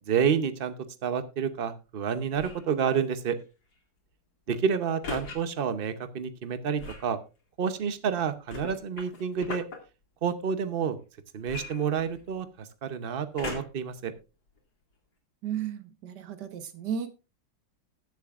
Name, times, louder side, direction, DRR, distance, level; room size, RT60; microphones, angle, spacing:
voice 1, 0.1-0.7 1.0-3.4 4.5-7.2 7.6-9.6 10.2-11.0 11.3-14.1, right 7 dB, 50° right, 11 dB, 0.7 m, -29 dB
sound 1, 2.3-2.7 5.0-5.4 6.8-7.1 8.5-9.8 11.5-12.4 13.4-13.9 14.6-14.7, left 3 dB, 55° left, 2.7 m, -38 dB
voice 2, 15.4-17.1, right 8 dB, 65° right, 11 dB, 1.6 m, -34 dB
20.5 x 7.1 x 2.4 m, 0.29 s
omnidirectional pair, 2.1 m